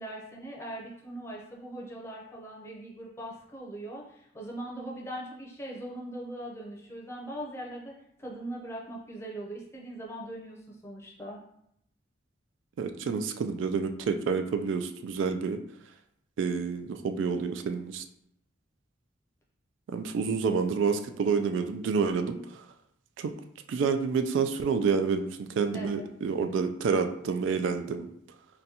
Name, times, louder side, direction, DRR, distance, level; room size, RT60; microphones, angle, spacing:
voice 1, 0.0-7.9 8.2-11.4 25.7-26.1, right 1 dB, 15° left, -3 dB, 0.6 m, -40 dB
voice 2, 12.8-15.6 16.4-18.0 19.9-22.7 23.2-23.3 23.7-28.1, right 5 dB, 85° right, 7 dB, 0.3 m, -28 dB
3.8 x 2.2 x 2.8 m, 0.74 s
head